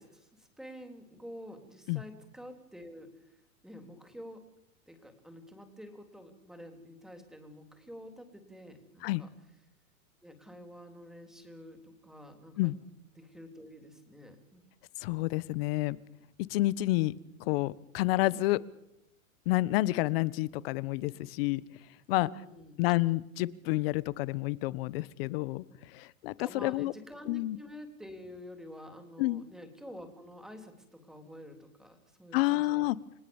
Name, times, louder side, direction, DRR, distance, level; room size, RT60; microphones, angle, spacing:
voice 1, 0.0-3.1 3.6-4.4 4.9-9.3 10.2-12.7 13.2-14.6 22.1-22.8 26.4-32.9, equal, ahead, 6 dB, 3.5 m, -48 dB
voice 2, 15.0-16.0 16.5-17.1 17.5-18.6 19.5-21.6 22.1-22.3 22.8-25.6 25.9-26.9 27.3-27.6 29.2-29.4 32.3-33.0, left 19 dB, 45° left, 19 dB, 1.2 m, -29 dB
30.0 x 19.5 x 7.2 m, 0.86 s
hypercardioid pair, 140°, 41 cm